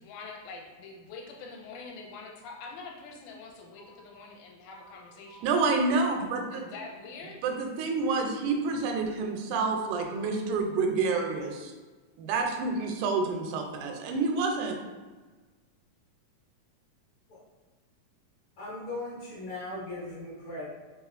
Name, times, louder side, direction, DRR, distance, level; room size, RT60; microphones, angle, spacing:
voice 1, 0.0-5.5 6.5-7.4, left 4 dB, 80° left, 0 dB, 2.0 m, -45 dB
voice 2, 4.7-5.4 9.5-9.7 10.1-10.3 17.3-17.4 18.6-20.7, left 2 dB, 60° left, -9 dB, 1.6 m, -40 dB
voice 3, 5.4-6.6 7.4-11.7 12.2-14.8, right 4 dB, 85° right, 2 dB, 2.1 m, -28 dB
4.7 x 3.3 x 2.4 m, 1.3 s
omnidirectional pair, 3.6 m